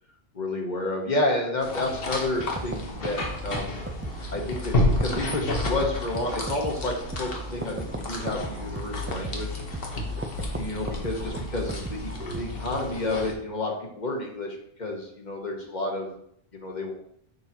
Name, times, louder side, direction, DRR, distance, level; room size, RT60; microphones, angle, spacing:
voice 1, 0.3-3.7 4.3-9.6 10.4-16.2 16.5-16.9, left 2 dB, 45° left, 1 dB, 1.3 m, -30 dB
sound 1, 1.6-13.3, left 2 dB, 65° left, 1.2 m, -31 dB
sound 2, 2.4-12.8, right 1 dB, 20° right, 0.3 m, -37 dB
6.8 x 5.7 x 2.8 m, 0.69 s
omnidirectional pair, 1.0 m